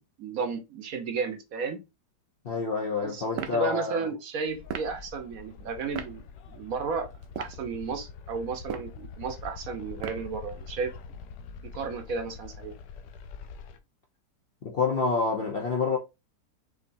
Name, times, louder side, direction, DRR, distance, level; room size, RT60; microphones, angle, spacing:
voice 1, 0.0-1.8 3.0-6.2 6.5-7.1 7.4-10.9 11.6-12.7, right 5 dB, 60° right, 1.1 m, -33 dB
voice 2, 2.4-4.1 14.6-16.0, left 4 dB, 55° left, 0.6 m, -27 dB
sound 1, 3.3-3.6 4.7-4.9 5.9-6.1 7.2-7.6 8.6-9.0 10.0-10.3, right 8 dB, 80° right, 1.3 m, -36 dB
sound 2, 4.5-13.8, left 5 dB, 80° left, 1.3 m, -44 dB
6.0 x 2.7 x 2.6 m
omnidirectional pair, 1.9 m